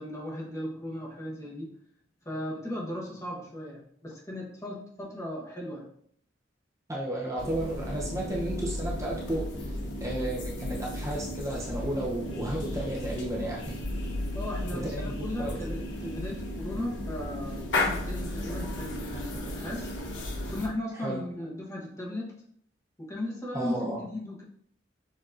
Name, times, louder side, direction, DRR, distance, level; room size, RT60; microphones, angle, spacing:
voice 1, 0.0-1.7 2.2-5.9 14.3-19.9 20.5-22.3 23.0-24.4, left 1 dB, 15° left, -3 dB, 1.0 m, -37 dB
voice 2, 6.9-9.5 10.0-13.8 14.7-15.7 21.0-21.2 23.5-24.1, right 1 dB, 15° right, -3 dB, 0.7 m, -33 dB
sound 1, 7.4-20.7, left 1 dB, 80° left, 0.9 m, -34 dB
6.5 x 2.8 x 2.5 m, 0.64 s
head